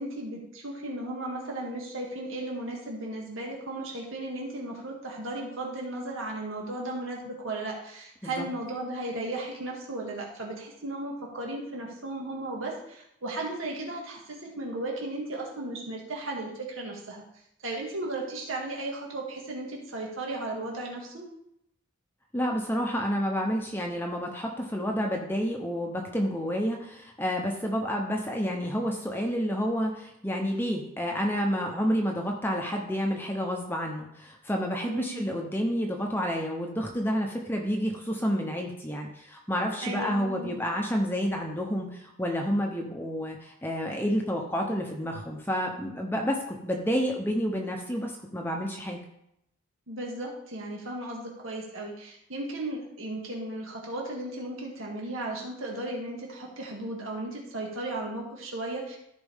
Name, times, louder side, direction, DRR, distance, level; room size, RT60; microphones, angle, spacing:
voice 1, 0.0-17.2 17.6-21.2 34.8-35.2 39.8-40.5 49.9-59.0, right 2 dB, 75° right, -1 dB, 2.1 m, -35 dB
voice 2, 22.3-49.0, equal, 10° left, 1 dB, 0.8 m, -29 dB
14.0 x 5.1 x 3.6 m, 0.78 s
head